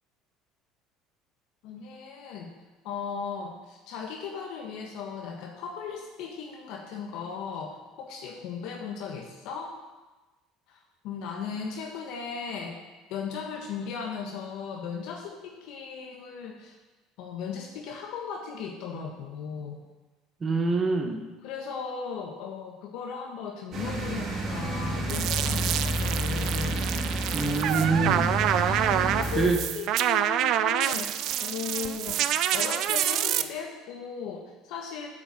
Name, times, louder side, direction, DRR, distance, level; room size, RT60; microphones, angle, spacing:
voice 1, 1.6-2.5 2.8-9.7 10.7-12.8 13.1-16.8 17.2-19.8 21.4-26.8 28.6-31.1 31.4-32.3 32.5-35.1, left 6 dB, 70° left, 1 dB, 1.4 m, -37 dB
voice 2, 20.4-21.2 27.3-28.4 29.4-29.6, right 4 dB, 25° right, 3 dB, 1.6 m, -25 dB
sound 1, 23.7-29.5, right 1 dB, 40° right, 3.2 m, -30 dB
sound 2, 25.1-33.4, right 11 dB, 60° right, 0.5 m, -27 dB
8.4 x 6.9 x 7.7 m, 1.2 s
supercardioid pair, 110°, 0 cm